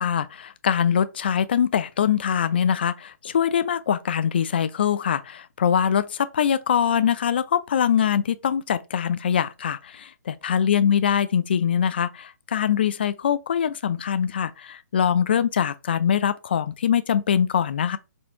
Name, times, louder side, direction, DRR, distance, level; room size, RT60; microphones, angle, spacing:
voice 1, 0.0-10.0 10.3-18.0, left 8 dB, 35° left, 0.3 m, -23 dB
4.3 x 2.7 x 4.3 m
hypercardioid pair, 175°, 10 cm